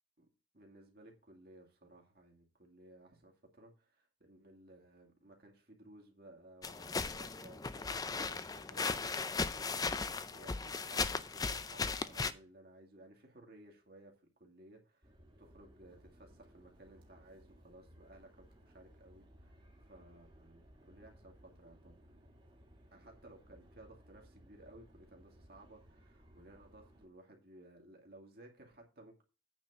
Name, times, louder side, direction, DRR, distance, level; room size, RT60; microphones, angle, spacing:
voice 1, 0.5-22.0 22.9-29.2, right 1 dB, 50° right, 2.4 m, -59 dB
sound 1, 6.6-12.3, left 4 dB, 20° left, 0.4 m, -37 dB
sound 2, 15.0-27.1, equal, 25° right, 1.7 m, -61 dB
9.0 x 4.2 x 7.0 m
head